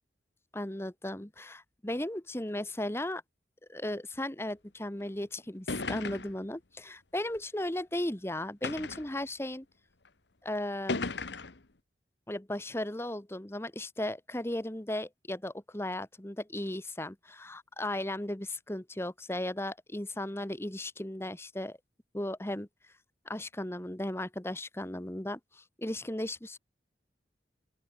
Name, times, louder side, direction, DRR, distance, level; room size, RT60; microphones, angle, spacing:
voice 1, 0.5-3.2 3.7-9.7 10.4-11.0 12.3-21.8 22.1-22.7 23.2-26.6, left 1 dB, 15° left, 1.2 m, -36 dB
sound 1, 5.1-5.2 5.7-6.5 7.4-7.5 8.6-9.2 10.1-10.2 10.9-11.6, left 3 dB, 75° left, 1.4 m, -35 dB
open air
head